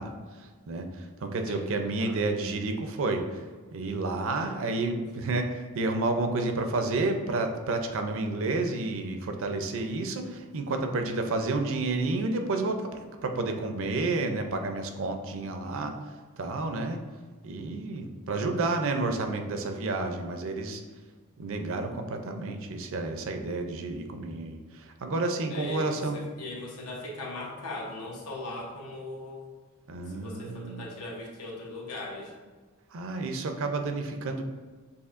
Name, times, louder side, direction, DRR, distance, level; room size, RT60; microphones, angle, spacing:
voice 1, 0.0-3.5 3.7-17.0 17.4-20.8 21.4-26.2 29.9-30.9 32.9-34.4, right 3 dB, 60° right, 5 dB, 0.5 m, -30 dB
voice 2, 2.0-2.5 4.4-5.0 25.5-29.4 30.1-32.3, left 1 dB, 85° left, -1 dB, 0.9 m, -39 dB
6.9 x 2.6 x 2.5 m, 1.5 s
head